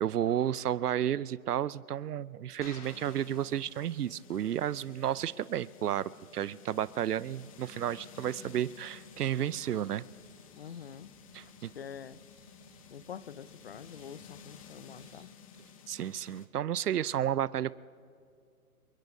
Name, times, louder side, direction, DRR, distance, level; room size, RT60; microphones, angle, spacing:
voice 1, 0.0-10.1 11.3-11.7 15.9-17.7, right 10 dB, 85° right, 20 dB, 0.6 m, -32 dB
sound 1, 2.6-4.3, left 3 dB, 85° left, 3.3 m, -52 dB
sound 2, 2.8-16.5, left 7 dB, 25° left, 0.8 m, -54 dB
sound 3, 6.7-15.3, right 6 dB, 25° right, 2.1 m, -65 dB
voice 2, 10.5-11.1 11.6-12.2 12.9-15.3, left 8 dB, 45° left, 18 dB, 0.5 m, -46 dB
28.5 x 18.5 x 2.7 m, 2.2 s
hypercardioid pair, 150°, 45 cm